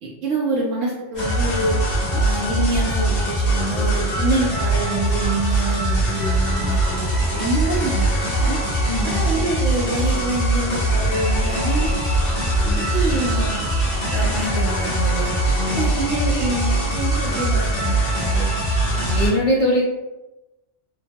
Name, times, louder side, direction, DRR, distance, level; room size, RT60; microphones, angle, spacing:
voice 1, 0.0-1.8 2.1-8.1 8.4-8.6 9.0-11.9 12.9-13.7 14.1-15.4 15.7-18.5, right 2 dB, 75° right, -4 dB, 1.0 m, -26 dB
sound 1, 1.1-19.3, right 1 dB, 40° left, 0.9 m, -21 dB
voice 2, 8.9-9.2 12.6-12.9 15.6-15.9 19.0-19.8, left 1 dB, 60° left, -3 dB, 0.5 m, -22 dB
2.9 x 2.1 x 2.6 m, 1.0 s
omnidirectional pair, 1.3 m